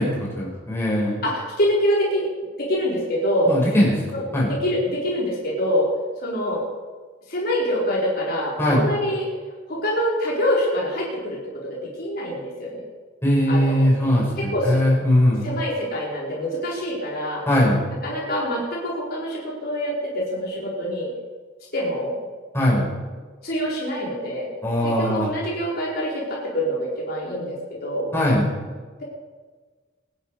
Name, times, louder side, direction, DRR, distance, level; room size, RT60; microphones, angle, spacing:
voice 1, 0.0-1.2 3.5-3.9 4.3-4.5 8.6-8.8 13.2-15.5 17.5-17.8 22.5-22.9 24.6-25.3 28.1-28.5, left 1 dB, 15° left, -5 dB, 6.0 m, -20 dB
voice 2, 1.2-2.3 2.6-3.5 4.1-4.2 4.5-5.9 6.2-6.6 7.3-9.3 9.7-11.4 11.7-12.8 13.5-13.9 14.4-14.8 15.4-17.4 18.0-21.1 21.7-22.2 23.4-24.5 24.8-28.1, equal, 55° left, -5 dB, 4.5 m, -25 dB
24.5 x 10.5 x 4.9 m, 1.4 s
head